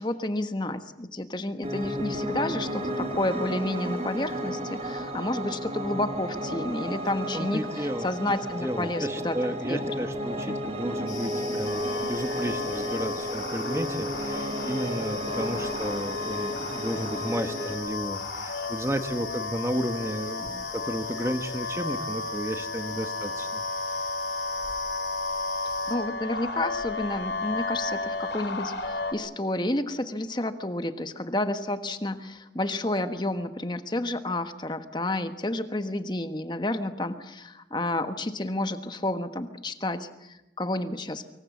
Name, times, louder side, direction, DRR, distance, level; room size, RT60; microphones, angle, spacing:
voice 1, 0.0-9.9 10.5-10.6 25.9-41.2, left 1 dB, 25° left, 9 dB, 1.3 m, -30 dB
Piano, 1.6-17.7, equal, 35° right, 3.0 m, -33 dB
voice 2, 7.3-8.1 8.6-23.6, equal, 15° right, 7 dB, 1.4 m, -33 dB
sound 1, 11.1-25.9, left 5 dB, 40° left, 6.6 m, -42 dB
sound 2, 11.6-29.1, left 3 dB, 75° left, 3.5 m, -33 dB
25.0 x 23.5 x 7.3 m, 0.93 s
head